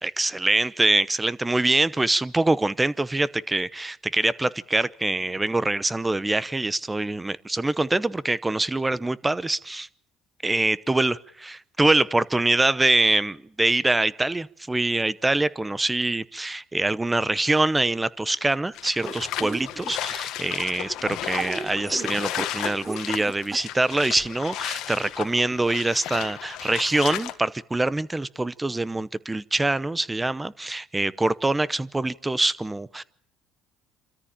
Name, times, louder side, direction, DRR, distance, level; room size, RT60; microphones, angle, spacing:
voice 1, 0.0-9.9 10.4-11.1 11.4-33.0, right 2 dB, 15° right, 0.8 m, -24 dB
sound 1, 18.7-27.3, left 13 dB, 70° left, 1.6 m, -34 dB
sound 2, 19.0-20.2 21.3-23.6 24.0-24.1 24.7-24.8, right 4 dB, 30° right, 2.6 m, -35 dB
27.5 x 14.0 x 8.8 m
supercardioid pair, 90°, 0 cm